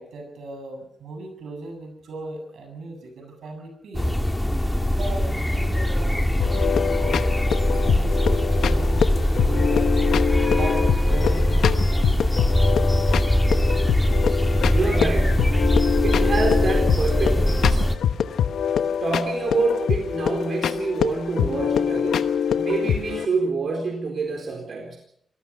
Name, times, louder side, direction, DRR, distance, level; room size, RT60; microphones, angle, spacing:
voice 1, 0.0-4.2 5.0-7.3 7.8-9.9 10.5-12.2, right 2 dB, 85° right, 5 dB, 7.4 m, -38 dB
sound 1, 3.9-18.0, equal, 5° left, 1.7 m, -21 dB
sound 2, 6.4-23.3, left 8 dB, 85° left, 1.1 m, -25 dB
voice 2, 14.7-15.5 16.0-17.8 19.0-22.2 22.6-25.0, right 3 dB, 55° right, 3 dB, 4.2 m, -26 dB
26.0 x 18.5 x 5.7 m, 0.68 s
cardioid pair, 100°, 0 cm